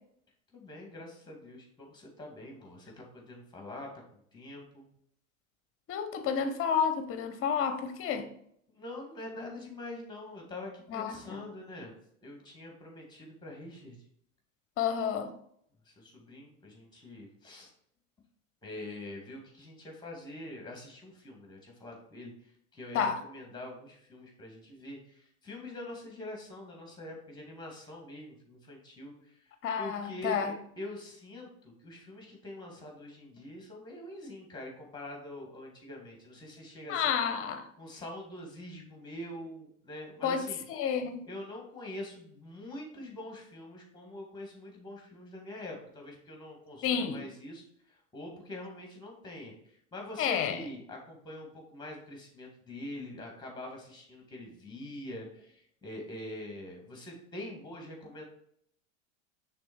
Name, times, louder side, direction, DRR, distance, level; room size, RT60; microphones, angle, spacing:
voice 1, 0.5-3.9 4.3-4.9 8.7-11.9 12.2-14.0 15.9-17.7 18.6-22.3 22.7-29.4 29.8-37.2 37.8-40.6 41.3-47.6 48.1-49.5 49.9-58.3, left 1 dB, 10° left, 2.2 m, -44 dB
voice 2, 5.9-8.3 10.9-11.4 14.8-15.3 22.9-23.2 29.6-30.5 36.9-37.6 40.2-40.4 40.7-41.3 46.8-47.2 50.2-50.6, left 7 dB, 35° left, 0.9 m, -30 dB
6.1 x 3.7 x 4.6 m
hypercardioid pair, 95°, 39 cm